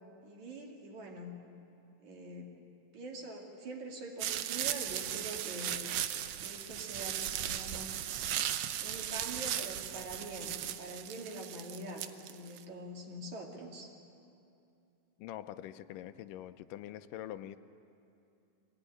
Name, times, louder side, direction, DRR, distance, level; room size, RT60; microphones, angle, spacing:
voice 1, 0.2-1.3 2.0-2.5 2.9-5.8 6.4-8.0 8.8-13.9, right 2 dB, 60° right, 0 dB, 3.4 m, -44 dB
sound 1, 4.2-12.6, right 11 dB, 85° right, 1.4 m, -37 dB
voice 2, 15.2-17.6, left 12 dB, 80° left, 11 dB, 2.2 m, -44 dB
23.5 x 17.5 x 9.9 m, 2.6 s
omnidirectional pair, 4.0 m